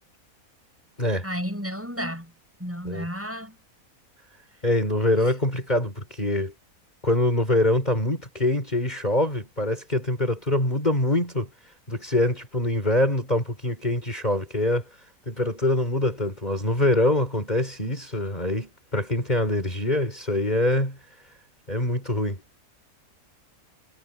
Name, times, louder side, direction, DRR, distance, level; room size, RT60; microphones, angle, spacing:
voice 1, 1.2-2.3 2.6-3.6, equal, 10° right, 8.0 m, -32 dB
voice 2, 4.6-6.5 7.0-11.5 11.9-14.9 15.3-21.0 21.7-22.4, left 1 dB, 30° left, 5.2 m, -24 dB
omnidirectional pair, 1.5 m